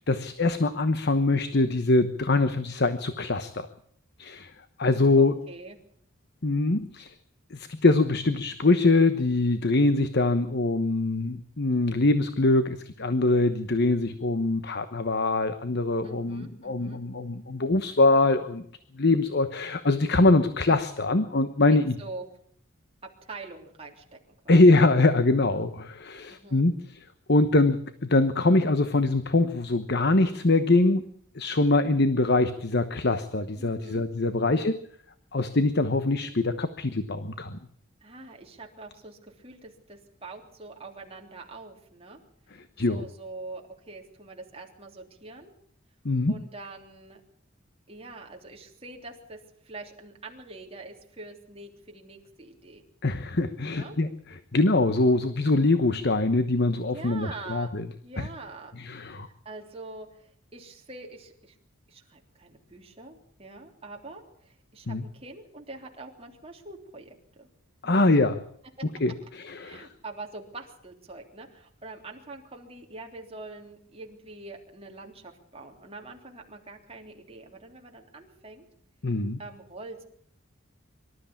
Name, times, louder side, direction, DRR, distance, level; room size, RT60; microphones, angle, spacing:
voice 1, 0.0-3.7 4.2-4.5 4.8-5.3 6.4-7.1 7.5-18.6 18.9-22.0 24.5-27.0 27.3-34.8 35.3-37.6 42.8-43.0 46.0-46.4 53.0-54.1 54.5-57.9 58.2-58.3 58.8-59.3 64.9-65.0 67.8-68.4 69.0-69.9 79.0-79.4, left 2 dB, 55° left, 11 dB, 1.1 m, -23 dB
voice 2, 5.2-5.8 16.0-17.0 21.7-22.2 23.0-24.6 26.3-26.6 33.5-34.1 34.3-34.7 38.0-42.2 42.9-45.5 46.3-47.2 47.9-52.8 53.6-54.0 56.9-57.8 58.0-58.7 59.1-61.6 61.9-67.5 67.8-68.1 69.6-78.7 79.4-80.0, right 3 dB, 30° right, 1 dB, 3.4 m, -44 dB
24.5 x 13.0 x 8.6 m, 0.64 s
head